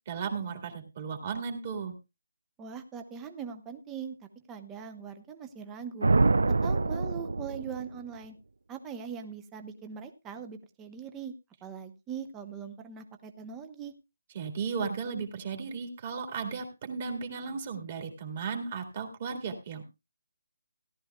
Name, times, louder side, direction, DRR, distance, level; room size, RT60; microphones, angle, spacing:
voice 1, 0.1-2.0 14.3-19.8, right 5 dB, 25° right, 3 dB, 1.9 m, -35 dB
voice 2, 2.6-4.2 4.5-6.1 6.6-8.3 8.7-11.3 11.6-13.9, right 7 dB, 10° right, 7 dB, 0.7 m, -41 dB
sound 1, 6.0-8.0, right 3 dB, 85° right, 0.6 m, -25 dB
17.0 x 12.0 x 2.3 m, 0.26 s
hypercardioid pair, 175°, 0 cm